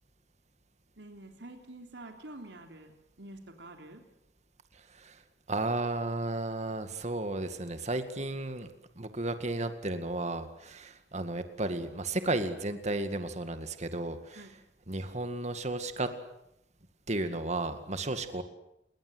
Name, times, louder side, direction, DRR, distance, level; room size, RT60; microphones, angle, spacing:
voice 1, 1.0-2.9 3.2-4.0 14.3-14.5, right 1 dB, 90° right, 4 dB, 3.4 m, -47 dB
voice 2, 5.5-14.4 14.9-16.1 17.1-18.4, right 2 dB, 40° right, 9 dB, 2.1 m, -33 dB
28.5 x 22.0 x 8.1 m, 0.81 s
head